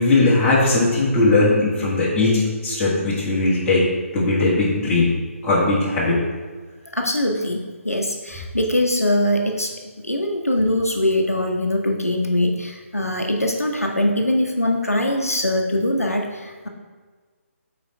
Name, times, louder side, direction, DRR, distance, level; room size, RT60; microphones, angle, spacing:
voice 1, 0.0-3.8 4.1-5.1 5.4-6.2, left 2 dB, 15° left, -8 dB, 1.8 m, -18 dB
voice 2, 6.9-9.7 10.0-16.7, left 1 dB, 85° left, 2 dB, 0.8 m, -22 dB
5.5 x 4.3 x 5.2 m, 1.5 s
figure-of-eight pair, 140°, 8 cm